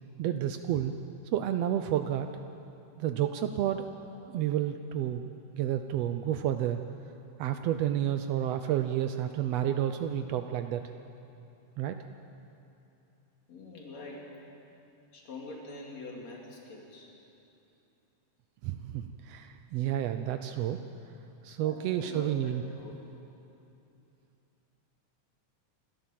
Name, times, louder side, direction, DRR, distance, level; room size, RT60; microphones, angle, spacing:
voice 1, 0.2-0.9 1.3-2.3 3.0-5.3 5.5-6.8 7.4-10.9 11.8-12.0 18.6-20.8 21.4-22.6, right 11 dB, 85° right, 8 dB, 1.4 m, -30 dB
voice 2, 13.5-14.3 15.1-17.1 21.6-23.1, left 2 dB, 55° left, -2 dB, 4.2 m, -44 dB
28.0 x 12.5 x 7.6 m, 2.8 s
omnidirectional pair, 3.6 m